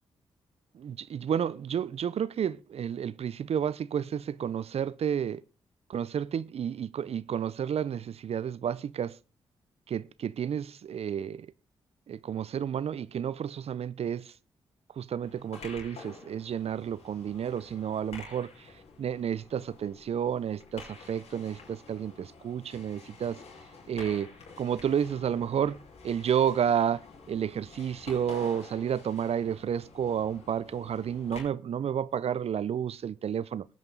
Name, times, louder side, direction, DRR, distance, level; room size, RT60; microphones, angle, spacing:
voice 1, 0.7-5.4 5.9-9.2 9.9-11.5 12.1-14.3 15.0-18.7 19.0-23.4 23.9-24.3 24.6-25.8 26.0-27.0 27.3-33.7, right 8 dB, 60° right, 0.6 m, -31 dB
sound 1, 15.2-31.4, left 4 dB, 65° left, 4.9 m, -49 dB
18.5 x 8.8 x 3.9 m
supercardioid pair, 45°, 12 cm